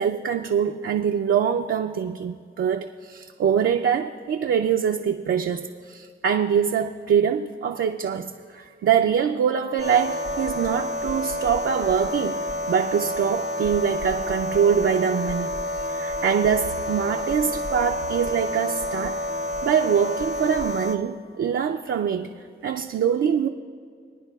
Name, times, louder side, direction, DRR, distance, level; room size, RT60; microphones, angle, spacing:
voice 1, 0.0-12.4 12.7-19.2 19.6-22.3 22.6-23.5, right 8 dB, 75° right, 3 dB, 0.5 m, -24 dB
sound 1, 9.8-21.0, left 1 dB, 55° left, 0.9 m, -29 dB
24.0 x 9.8 x 2.3 m, 2.1 s
cardioid pair, 50°, 20 cm